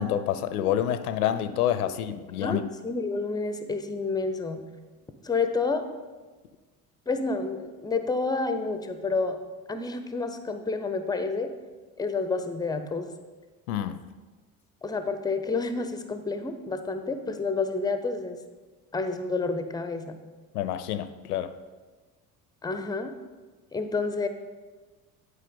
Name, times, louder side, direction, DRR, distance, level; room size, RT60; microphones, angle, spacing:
voice 1, 0.0-2.6 13.7-14.0 20.5-21.5, left 10 dB, 75° left, 11 dB, 0.5 m, -27 dB
voice 2, 2.4-4.6 5.2-5.9 7.1-9.4 9.7-11.5 12.0-13.1 14.8-18.4 18.9-20.2 22.6-23.1 23.7-24.3, left 3 dB, 10° left, 8 dB, 0.5 m, -29 dB
9.8 x 4.6 x 3.6 m, 1.3 s
figure-of-eight pair, 55°, 46 cm